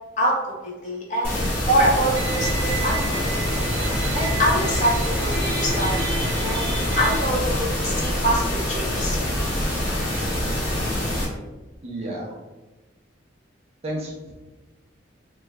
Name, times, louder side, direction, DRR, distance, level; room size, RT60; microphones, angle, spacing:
voice 1, 0.6-1.3 1.6-3.2 4.1-6.0 6.4-9.2, right 1 dB, 40° left, -4 dB, 0.9 m, -24 dB
sound 1, 1.2-11.2, left 1 dB, 80° left, 1.5 m, -25 dB
sound 2, 1.7-7.6, equal, 10° left, 0.6 m, -33 dB
Bowed string instrument, 2.2-7.2, right 4 dB, 75° right, 0.7 m, -33 dB
voice 2, 11.8-12.4 13.8-14.3, right 1 dB, 30° right, -3 dB, 0.6 m, -31 dB
3.0 x 2.3 x 3.4 m, 1.1 s
head